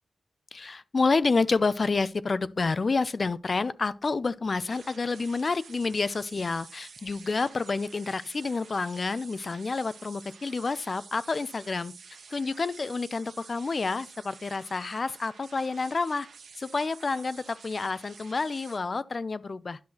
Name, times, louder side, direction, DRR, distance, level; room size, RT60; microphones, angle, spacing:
voice 1, 0.5-11.9 12.3-16.3 16.6-19.8, left 4 dB, 50° left, 0.4 m, -29 dB
sound 1, 4.7-18.8, right 5 dB, 85° right, 1.0 m, -50 dB
10.5 x 6.0 x 2.8 m
cardioid pair, 65°, 0 cm